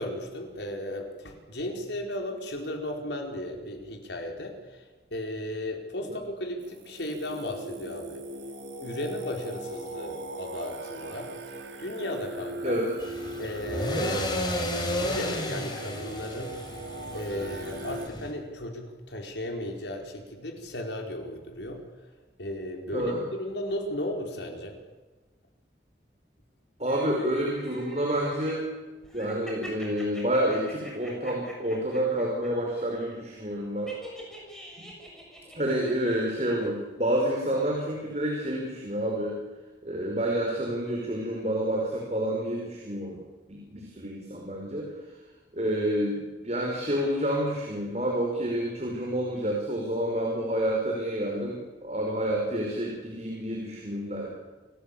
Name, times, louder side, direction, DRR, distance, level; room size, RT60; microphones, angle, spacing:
voice 1, 0.0-8.2 8.8-11.3 11.8-12.8 13.4-14.4 15.0-16.5 17.1-22.1 22.4-24.8, left 1 dB, 75° left, 3 dB, 4.8 m, -35 dB
Singing, 6.6-18.1, right 1 dB, 85° right, 3.4 m, -40 dB
voice 2, 12.6-12.9 13.9-14.2 22.9-23.3 26.8-28.6 29.1-33.9 34.8-34.9 35.6-39.4 39.8-43.2 43.5-45.0 45.5-54.3, right 1 dB, 35° right, -1 dB, 5.6 m, -29 dB
sound 1, 13.0-18.3, left 1 dB, 25° left, 5.1 m, -33 dB
sound 2, 26.9-28.5 29.0-32.5 32.7-33.2 33.9-36.3 36.6-36.7, equal, 5° left, 7.2 m, -45 dB
29.0 x 19.0 x 8.8 m, 1.2 s
head